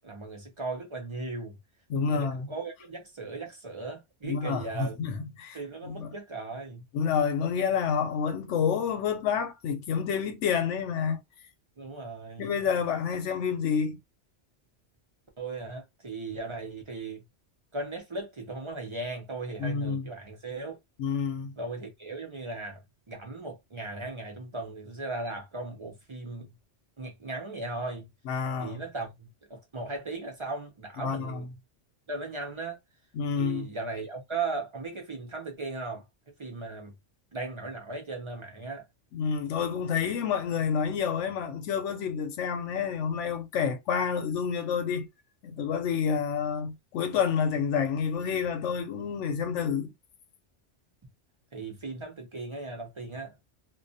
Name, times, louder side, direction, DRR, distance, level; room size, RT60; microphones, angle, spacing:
voice 1, 0.0-1.6 2.0-5.0 5.5-6.8 11.8-12.5 15.4-17.2 17.7-20.8 21.6-26.6 27.0-28.1 28.6-31.5 32.1-32.8 33.3-36.1 36.4-36.9 37.3-38.9 51.5-53.4, right 3 dB, 40° right, 0.4 m, -37 dB
voice 2, 1.9-2.5 4.2-5.6 5.8-6.1 6.9-11.2 12.4-14.0 19.6-20.1 21.0-21.5 28.3-28.8 31.0-31.4 33.1-33.7 39.1-45.1 45.4-49.9, left 6 dB, 85° left, 0.9 m, -29 dB
2.2 x 2.2 x 2.6 m
omnidirectional pair, 1.2 m